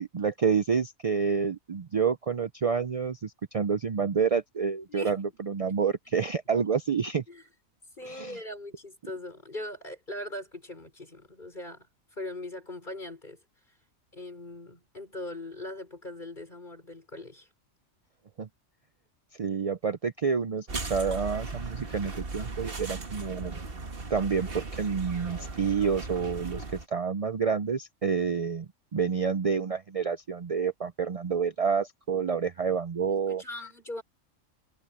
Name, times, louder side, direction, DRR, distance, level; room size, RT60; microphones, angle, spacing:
voice 1, 0.0-7.2 8.0-8.4 18.4-18.5 19.3-23.6 24.1-33.4, right 6 dB, 65° right, 0.3 m, -28 dB
voice 2, 8.0-11.9 12.1-13.4 14.1-17.5 33.3-34.0, left 1 dB, 35° left, 5.7 m, -40 dB
sound 1, 20.7-26.8, right 3 dB, 45° right, 1.8 m, -37 dB
omnidirectional pair, 1.4 m